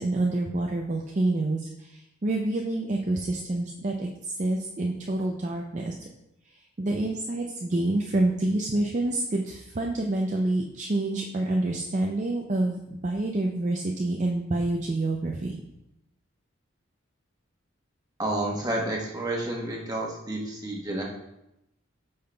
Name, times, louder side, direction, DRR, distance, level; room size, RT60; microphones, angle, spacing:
voice 1, 0.0-5.9 6.5-15.6, right 2 dB, 35° right, 0 dB, 0.4 m, -27 dB
voice 2, 18.2-21.0, right 1 dB, 20° right, -2 dB, 1.1 m, -30 dB
8.6 x 5.6 x 2.2 m, 0.87 s
head